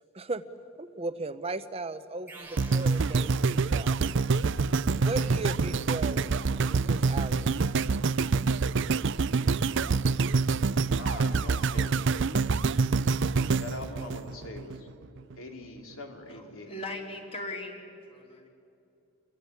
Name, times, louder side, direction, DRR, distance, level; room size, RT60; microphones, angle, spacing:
voice 1, 0.8-4.0 5.0-7.5, right 2 dB, 30° right, 11 dB, 0.7 m, -37 dB
sound 1, 2.3-4.2, right 2 dB, 10° right, 2.2 m, -49 dB
sound 2, 2.6-14.8 15.3-15.4, right 4 dB, 60° right, 0.6 m, -26 dB
voice 2, 10.9-12.5 13.6-14.9 15.3-16.7, left 2 dB, 75° left, 3 dB, 3.2 m, -42 dB
voice 3, 16.3-17.8 18.1-18.5, left 2 dB, 30° left, 1 dB, 4.0 m, -39 dB
27.5 x 22.5 x 9.8 m, 2.7 s
head